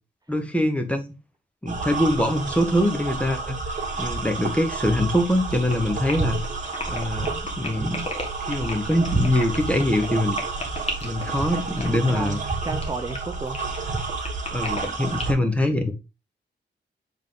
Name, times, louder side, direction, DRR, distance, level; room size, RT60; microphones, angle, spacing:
voice 1, 0.3-1.0 1.6-3.6 4.0-6.4 6.9-7.3 7.6-8.0 8.4-10.4 11.0-12.4 14.5-15.9, left 1 dB, 5° left, 0.9 m, -23 dB
sound 1, 1.7-15.3, right 3 dB, 40° right, 1.9 m, -30 dB
sound 2, 5.7-15.2, left 2 dB, 35° left, 1.5 m, -34 dB
voice 2, 11.7-13.6, right 3 dB, 20° right, 0.5 m, -33 dB
7.2 x 3.7 x 3.8 m
wide cardioid pair, 155°, 19 cm